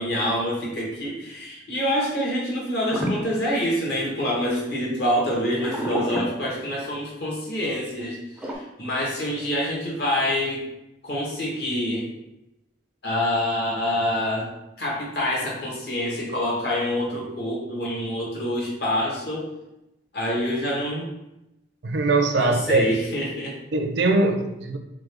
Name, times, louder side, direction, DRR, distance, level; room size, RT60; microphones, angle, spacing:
voice 1, 0.0-10.6 11.0-12.1 13.0-14.5 14.8-19.5 20.1-21.1 22.3-23.5, equal, 60° left, -3 dB, 1.3 m, -26 dB
sound 1, 2.9-4.3 5.5-7.1 8.4-8.5, equal, 5° right, 0.4 m, -31 dB
voice 2, 21.8-22.9 23.7-24.8, right 2 dB, 70° right, 6 dB, 0.5 m, -21 dB
3.8 x 3.7 x 3.4 m, 0.91 s
head